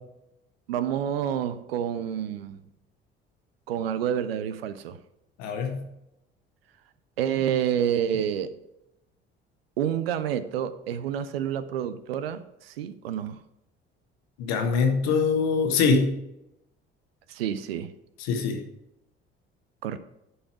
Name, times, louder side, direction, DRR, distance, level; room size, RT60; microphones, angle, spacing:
voice 1, 0.7-2.6 3.7-5.0 7.2-8.6 9.8-13.4 17.3-17.9 19.8-20.0, right 9 dB, 75° right, 0.6 m, -28 dB
voice 2, 5.4-5.8 14.4-16.1 18.2-18.6, left 5 dB, 60° left, 1.5 m, -23 dB
11.5 x 5.5 x 4.6 m
figure-of-eight pair, 50°, 30 cm